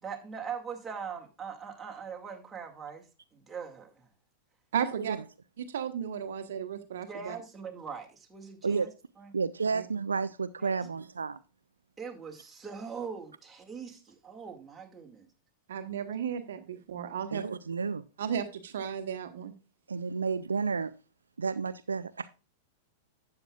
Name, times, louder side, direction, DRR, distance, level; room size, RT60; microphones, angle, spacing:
voice 1, 0.0-3.1 3.3-4.1 7.1-9.3 10.6-10.8 12.0-15.3, right 6 dB, 15° right, 2.1 m, -41 dB
voice 2, 4.7-5.2 5.6-7.3 9.7-9.8 15.7-17.4 18.2-19.5, right 8 dB, 65° right, 1.1 m, -34 dB
voice 3, 9.3-11.4 17.3-18.0 19.9-20.9 21.4-22.3, right 5 dB, 85° right, 0.4 m, -31 dB
12.0 x 8.6 x 2.4 m
figure-of-eight pair, 95°, 0 cm